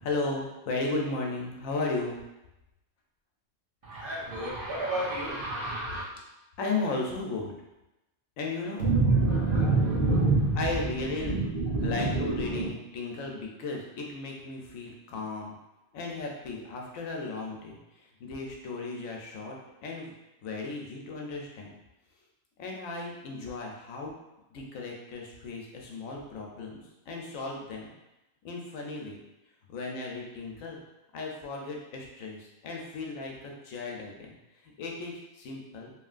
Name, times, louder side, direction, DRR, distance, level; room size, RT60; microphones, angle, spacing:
voice 1, 0.0-2.2 5.9-6.0 6.6-7.6 8.4-8.9 10.6-11.4 11.8-15.6 15.9-20.1 20.4-21.7 22.6-24.1 24.5-27.9 28.4-29.2 29.7-30.8 31.1-34.3 34.6-35.9, left 3 dB, 85° left, 0 dB, 1.0 m, -35 dB
voice 2, 3.8-6.0 8.8-10.7 11.2-12.6, right 3 dB, 50° right, -7 dB, 0.9 m, -27 dB
3.0 x 2.6 x 2.4 m, 0.96 s
omnidirectional pair, 1.3 m